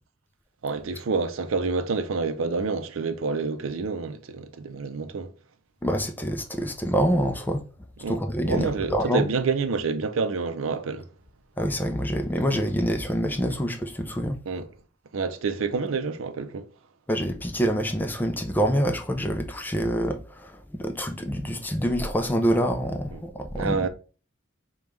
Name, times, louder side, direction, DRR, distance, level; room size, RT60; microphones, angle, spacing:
voice 1, 0.6-5.3 8.0-8.2 8.5-11.1 14.5-14.7 15.1-16.7 23.1-23.2 23.5-23.9, right 4 dB, 80° right, 0.5 m, -28 dB
voice 2, 5.8-7.6 8.1-9.2 11.6-14.4 17.1-23.9, equal, 10° left, 0.4 m, -26 dB
5.2 x 2.3 x 3.1 m
head